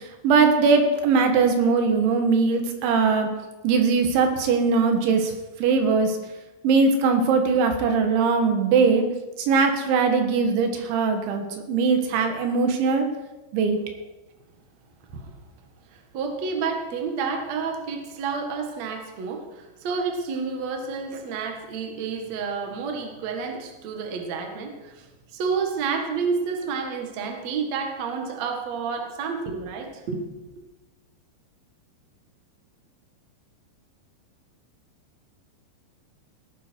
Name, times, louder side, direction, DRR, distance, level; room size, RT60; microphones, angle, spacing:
voice 1, 0.0-3.3 3.6-5.3 5.6-6.2 6.6-9.1 9.4-13.1 13.5-13.8, right 4 dB, 90° right, 5 dB, 3.9 m, -21 dB
voice 2, 15.9-30.5, right 5 dB, 50° right, 3 dB, 2.3 m, -30 dB
17.5 x 13.0 x 4.6 m, 1.1 s
omnidirectional pair, 5.2 m